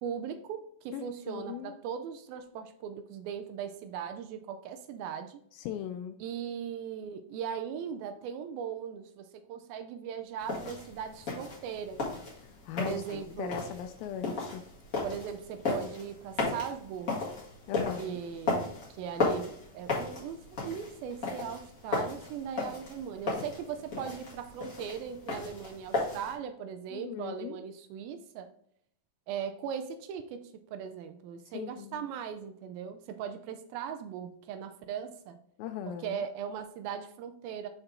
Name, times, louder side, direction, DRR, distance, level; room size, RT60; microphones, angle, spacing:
voice 1, 0.0-5.4 6.2-12.1 12.8-13.6 15.0-17.2 18.0-19.5 19.7-28.5 29.3-35.4 35.8-37.7, right 8 dB, 80° right, 8 dB, 2.3 m, -39 dB
voice 2, 0.9-1.7 5.6-6.2 12.4-14.6 17.7-18.2 26.9-27.6 31.5-32.1 35.6-36.2, left 9 dB, 80° left, 8 dB, 2.2 m, -39 dB
sound 1, 10.4-26.3, left 3 dB, 40° left, 1.3 m, -35 dB
6.5 x 4.5 x 3.6 m, 0.68 s
omnidirectional pair, 4.4 m